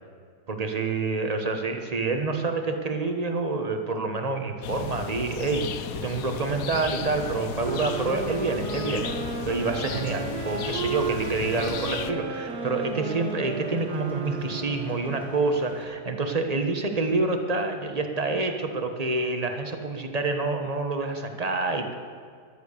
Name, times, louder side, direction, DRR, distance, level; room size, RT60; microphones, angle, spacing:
voice 1, 0.5-9.1 9.4-21.9, right 3 dB, 25° right, 5 dB, 1.2 m, -27 dB
sound 1, 4.6-12.1, left 8 dB, 70° left, 1.1 m, -35 dB
sound 2, 6.3-15.8, equal, ahead, 3.1 m, -43 dB
sound 3, 7.6-15.3, right 4 dB, 75° right, 1.9 m, -34 dB
14.0 x 11.5 x 6.7 m, 2.1 s
omnidirectional pair, 1.7 m